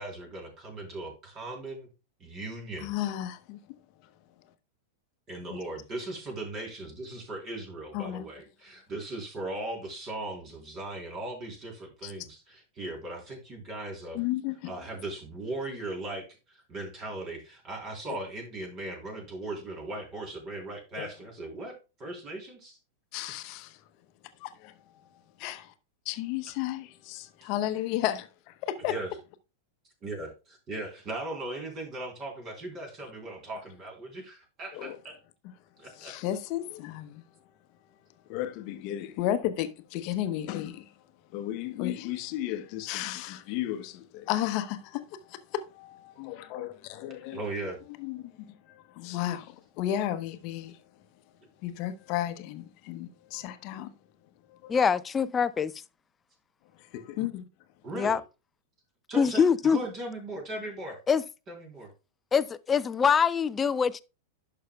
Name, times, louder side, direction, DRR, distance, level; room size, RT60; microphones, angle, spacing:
voice 1, 0.0-1.9 2.2-2.9 5.3-14.2 14.6-22.8 23.3-23.4 27.4-27.5 28.9-29.1 30.0-35.2 35.8-36.1 47.3-47.8 57.8-58.2 59.1-59.4 59.7-61.0 61.5-61.9, right 2 dB, 35° right, 3.6 m, -38 dB
voice 2, 2.8-3.6 5.5-5.6 7.9-8.3 12.0-12.1 14.1-14.7 21.0-21.1 23.1-23.8 24.4-24.7 25.4-25.7 26.1-28.9 34.7-35.0 36.0-37.2 38.3-40.9 41.3-47.4 48.0-50.8 51.6-53.9 54.5-54.7 56.9-57.4, left 12 dB, 50° left, 0.8 m, -33 dB
voice 3, 54.7-55.7 57.9-58.2 59.2-59.8 61.1-61.2 62.3-64.0, left 6 dB, 20° left, 0.4 m, -24 dB
11.0 x 5.8 x 2.3 m
hypercardioid pair, 100°, 0 cm